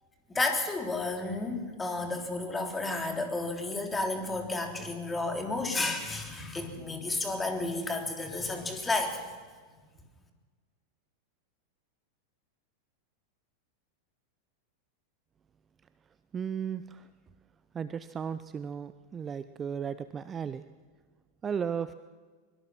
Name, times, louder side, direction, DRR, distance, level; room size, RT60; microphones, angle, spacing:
voice 1, 0.3-9.2, left 2 dB, 10° left, 4 dB, 3.3 m, -32 dB
voice 2, 16.3-17.1 17.7-20.6 21.4-21.9, right 7 dB, 20° right, 14 dB, 0.6 m, -35 dB
23.0 x 22.0 x 6.1 m, 1.5 s
figure-of-eight pair, 90°, 0 cm